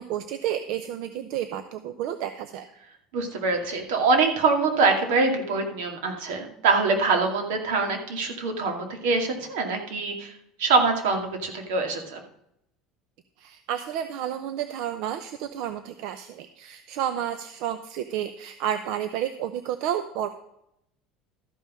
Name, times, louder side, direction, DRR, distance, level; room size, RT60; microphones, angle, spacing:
voice 1, 0.0-2.7 13.4-20.3, right 10 dB, 65° right, 10 dB, 0.7 m, -31 dB
voice 2, 3.1-10.3 10.6-12.2, right 4 dB, 85° right, 4 dB, 2.3 m, -24 dB
13.0 x 5.6 x 6.2 m, 0.79 s
cardioid pair, 150°, 0 cm